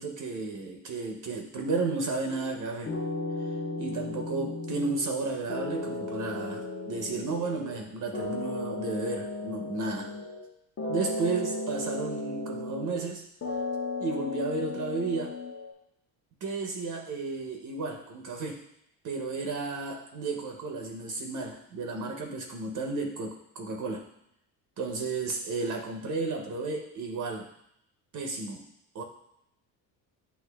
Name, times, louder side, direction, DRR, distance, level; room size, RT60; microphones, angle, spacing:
voice 1, 0.0-3.0 3.4-3.5 3.8-10.1 10.9-13.3 14.0-15.4 16.4-18.6 19.0-24.1 24.8-27.5 28.1-28.7 28.9-29.0, right 3 dB, 50° right, 2 dB, 0.7 m, -33 dB
sound 1, 2.3-2.6 2.9-5.2 5.5-7.8 8.1-10.5 10.8-13.1 13.4-15.7, left 2 dB, 35° left, 0.8 m, -35 dB
8.1 x 2.7 x 2.2 m, 0.78 s
supercardioid pair, 85°, 41 cm